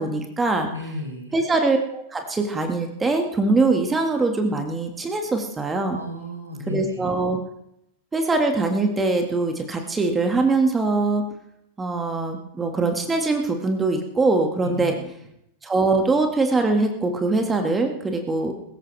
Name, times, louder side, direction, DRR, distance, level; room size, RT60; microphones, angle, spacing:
voice 1, 0.0-0.7 1.3-6.0 6.7-7.4 8.1-11.3 11.8-15.0 15.6-18.6, right 3 dB, 15° right, 4 dB, 1.9 m, -22 dB
voice 2, 0.7-1.4 5.9-7.1 14.6-15.0, left 1 dB, 85° right, 1 dB, 3.0 m, -34 dB
22.0 x 14.0 x 3.4 m, 0.78 s
figure-of-eight pair, 90°, 0 cm